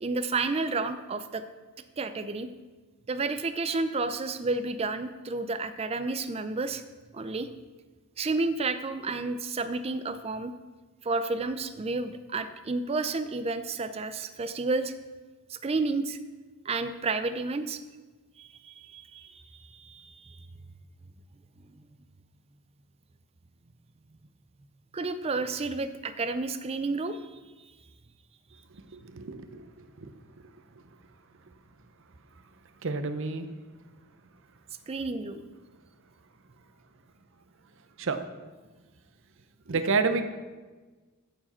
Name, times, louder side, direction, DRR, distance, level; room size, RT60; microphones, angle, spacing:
voice 1, 0.0-1.4 2.0-2.5 3.1-6.8 7.1-7.5 8.2-10.5 11.0-14.9 15.5-16.2 16.6-17.8 18.4-19.4 19.7-20.4 24.9-27.4 34.9-35.4 39.7-39.8, right 3 dB, 30° right, 10 dB, 0.4 m, -31 dB
voice 2, 28.9-29.6 30.0-30.1 32.8-33.5 38.0-38.2 39.7-40.2, right 4 dB, 60° right, 9 dB, 0.7 m, -29 dB
14.5 x 4.8 x 4.3 m, 1.3 s
head